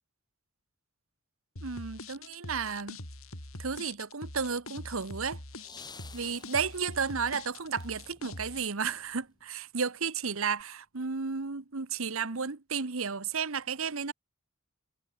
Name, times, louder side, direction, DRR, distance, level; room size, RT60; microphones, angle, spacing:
sound 1, 1.6-8.7, left 2 dB, 80° left, 7.5 m, -44 dB
voice 1, 1.6-3.0 3.6-5.4 6.1-14.1, right 5 dB, 75° right, 1.1 m, -33 dB
sound 2, 5.5-9.4 10.6-10.7, left 5 dB, 20° left, 6.8 m, -53 dB
head